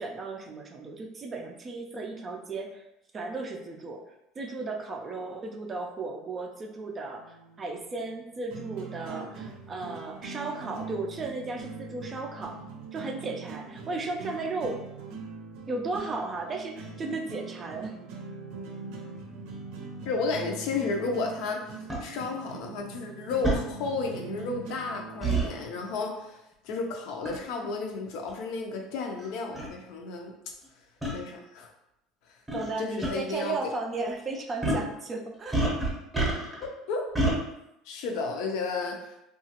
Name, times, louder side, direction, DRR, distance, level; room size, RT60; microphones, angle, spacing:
voice 1, 0.0-2.9 3.1-4.0 4.4-12.6 12.9-14.8 15.7-17.9 32.5-35.6, right 3 dB, 25° right, 2 dB, 0.4 m, -35 dB
sound 1, 7.1-25.9, right 4 dB, 75° right, 0.6 m, -42 dB
voice 2, 20.1-21.6 22.0-30.3 31.1-31.7 32.8-33.6 36.6-37.0 37.9-39.3, left 4 dB, 65° left, 2 dB, 0.5 m, -32 dB
sound 2, 21.9-22.0 23.4-23.6 25.2-25.5 27.2-27.5 28.3-28.4 29.2-29.3 29.5-29.7 31.0-31.1 32.5-32.7 33.0-33.1 34.6-34.9 35.5-36.6 37.1-37.4, right 2 dB, 5° right, 0.8 m, -27 dB
2.8 x 2.3 x 2.8 m, 0.85 s
cardioid pair, 150°, 0 cm